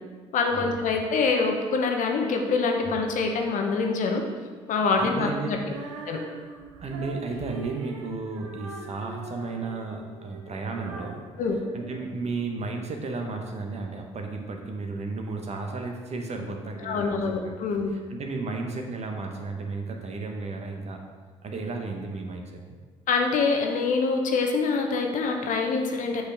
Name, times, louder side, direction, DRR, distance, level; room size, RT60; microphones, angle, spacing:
voice 1, 0.3-4.2 4.7-5.6 6.1-6.2 11.4-11.6 16.8-17.9 23.1-26.2, left 4 dB, 55° left, 3 dB, 1.0 m, -25 dB
voice 2, 4.9-5.7 6.8-11.2 11.7-17.5 17.9-21.0 21.4-22.8, right 3 dB, 45° right, 3 dB, 1.2 m, -33 dB
Female singing, 5.6-12.6, right 3 dB, 75° right, 0.8 m, -42 dB
8.0 x 5.9 x 3.5 m, 1.5 s
figure-of-eight pair, 50°, 16 cm